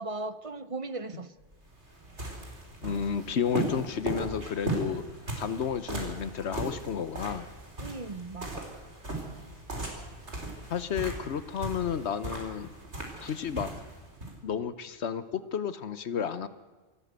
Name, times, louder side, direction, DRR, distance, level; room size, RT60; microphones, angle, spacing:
voice 1, 0.0-1.3 7.8-8.7, right 3 dB, 35° right, 14 dB, 0.7 m, -37 dB
sound 1, 1.4-14.4, right 2 dB, 80° right, 4.2 m, -38 dB
voice 2, 2.8-5.0 5.4-7.5 10.7-12.7 13.2-13.7 14.4-16.5, left 7 dB, 75° left, 13 dB, 1.1 m, -32 dB
27.0 x 12.5 x 8.1 m, 1.3 s
omnidirectional pair, 1.1 m